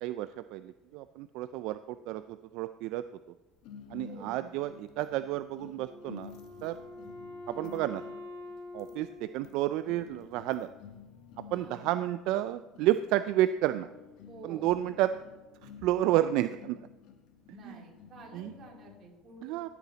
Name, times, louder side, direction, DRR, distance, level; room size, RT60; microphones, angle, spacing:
voice 1, 0.0-3.0 3.9-6.3 6.6-6.8 7.5-8.0 8.7-10.7 11.5-13.9 14.4-15.1 15.6-16.8 17.5-17.8 18.3-18.5 19.4-19.7, right 14 dB, 65° right, 12 dB, 0.3 m, -31 dB
sound 1, 3.6-19.1, left 7 dB, 65° left, 1.1 m, -52 dB
voice 2, 4.0-4.5 11.5-11.9 14.3-14.8 17.5-19.7, right 4 dB, 40° right, 0 dB, 2.8 m, -50 dB
Wind instrument woodwind instrument, 5.8-10.2, left 2 dB, 85° left, 4.5 m, -46 dB
14.0 x 8.4 x 4.0 m, 1.2 s
cardioid pair, 155°, 0 cm